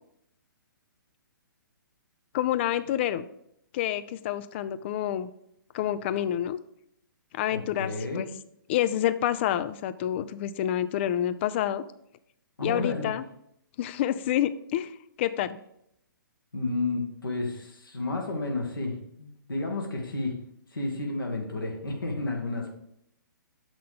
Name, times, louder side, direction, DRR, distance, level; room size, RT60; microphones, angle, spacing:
voice 1, 2.3-3.2 3.7-5.3 5.7-6.6 7.3-8.3 8.7-11.8 12.6-13.2 13.8-14.9 15.2-15.6, left 11 dB, 35° left, 14 dB, 0.4 m, -28 dB
voice 2, 7.5-8.3 12.6-13.1 16.5-20.4 20.7-22.8, left 2 dB, 80° left, 0 dB, 1.6 m, -31 dB
7.4 x 6.0 x 3.6 m, 0.75 s
figure-of-eight pair, 125°, 11 cm